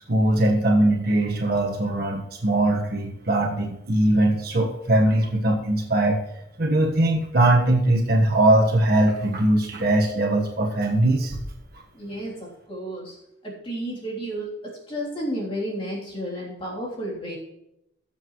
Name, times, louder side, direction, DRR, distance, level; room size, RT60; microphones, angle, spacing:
voice 1, 0.1-6.2 6.6-11.4, right 1 dB, 50° right, 1 dB, 1.5 m, -21 dB
voice 2, 11.9-13.2 13.4-17.4, equal, 25° left, -5 dB, 3.3 m, -32 dB
20.0 x 7.4 x 3.2 m, 0.85 s
head